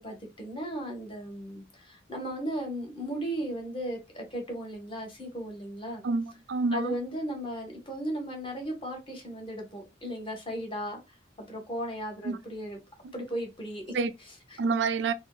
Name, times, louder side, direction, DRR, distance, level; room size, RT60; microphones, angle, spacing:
voice 1, 0.0-6.0 6.7-11.0 11.4-12.8 13.1-13.8 14.2-14.6, equal, 25° left, 1.1 m, -36 dB
voice 2, 6.0-7.0 12.2-12.4 13.0-13.1 13.9-14.1 14.6-15.1, right 4 dB, 60° right, 0.4 m, -28 dB
3.6 x 2.2 x 2.3 m
head